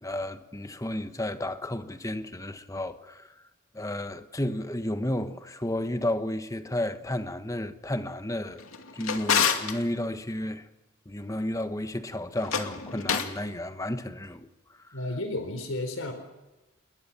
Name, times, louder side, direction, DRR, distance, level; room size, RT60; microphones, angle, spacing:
voice 1, 0.0-3.4 3.7-8.7 8.9-10.7 11.0-15.0, left 1 dB, 15° left, 1.3 m, -32 dB
Drawer open or close, 8.6-9.8 12.3-13.4, left 7 dB, 85° left, 2.5 m, -28 dB
voice 2, 14.9-16.1, left 2 dB, 70° left, 4.2 m, -32 dB
28.0 x 22.0 x 7.4 m
head